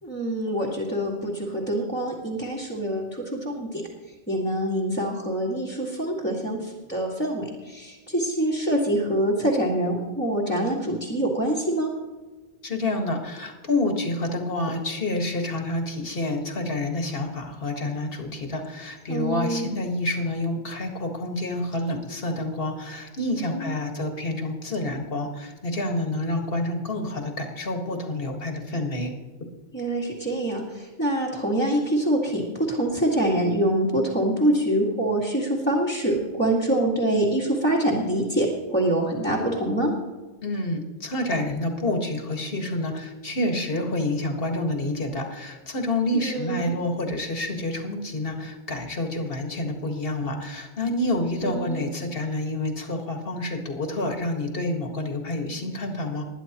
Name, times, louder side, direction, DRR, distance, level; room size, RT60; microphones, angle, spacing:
voice 1, 0.0-3.8 4.3-11.9 19.1-19.8 23.4-23.7 29.7-38.5 38.7-39.9 46.1-46.7 51.4-51.9, right 1 dB, 10° left, -5 dB, 1.9 m, -25 dB
voice 2, 12.6-29.1 40.4-56.2, left 1 dB, 55° left, 3 dB, 1.9 m, -28 dB
20.5 x 10.5 x 3.0 m, 1.3 s
omnidirectional pair, 1.2 m